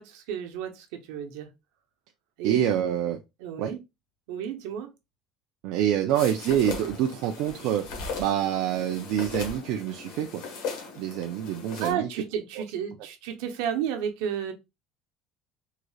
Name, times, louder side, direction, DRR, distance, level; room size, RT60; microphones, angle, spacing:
voice 1, 0.0-1.5 2.4-2.7 3.4-3.8 4.3-4.9 6.0-6.1 11.8-14.5, right 8 dB, 85° right, 0.8 m, -32 dB
voice 2, 2.4-3.2 3.6-3.7 5.6-7.8 8.2-10.4 11.0-12.1, right 10 dB, 65° right, 0.4 m, -26 dB
sound 1, 6.1-11.9, left 4 dB, 80° left, 1.3 m, -38 dB
3.7 x 3.1 x 2.3 m
cardioid pair, 145°, 0 cm